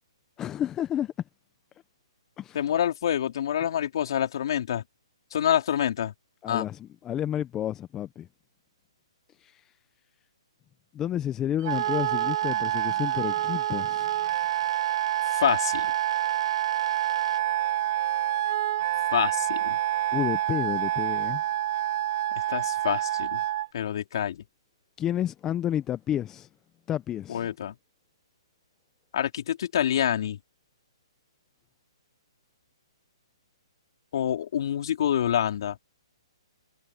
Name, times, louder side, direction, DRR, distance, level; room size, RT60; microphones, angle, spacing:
voice 1, 0.4-1.1 2.4-2.6 6.4-8.3 9.4-9.6 10.9-14.1 20.1-21.4 25.0-26.5 26.9-27.5, left 11 dB, 15° left, 0.8 m, -30 dB
voice 2, 2.5-4.8 5.3-6.1 6.5-6.7 15.4-15.9 19.1-19.8 22.5-23.4 23.7-24.4 27.3-27.7 29.1-30.4 34.1-35.8, left 10 dB, 55° left, 3.6 m, -27 dB
Wind instrument woodwind instrument, 11.6-23.7, right 13 dB, 40° right, 1.2 m, -27 dB
sound 1, 11.7-17.4, right 5 dB, 85° right, 7.5 m, -47 dB
hypercardioid pair, 150°, 3 cm